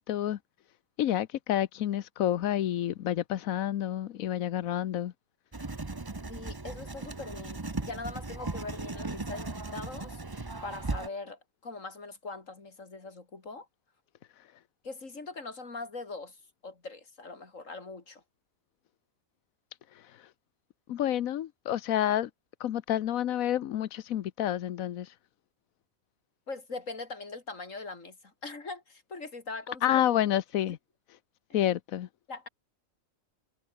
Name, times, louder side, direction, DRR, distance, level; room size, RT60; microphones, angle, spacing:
voice 1, 0.1-0.4 1.0-5.1 19.9-20.3 20.9-22.3 22.6-25.1 29.8-30.8 31.5-32.1, left 11 dB, 90° left, 1.2 m, -29 dB
Writing, 5.5-11.1, right 3 dB, 20° right, 1.0 m, -37 dB
voice 2, 6.3-13.7 14.8-16.4 16.6-18.2 26.5-30.0 30.7-30.8 31.5-31.6 32.3-32.5, left 3 dB, 70° left, 3.7 m, -42 dB
omnidirectional pair, 1.4 m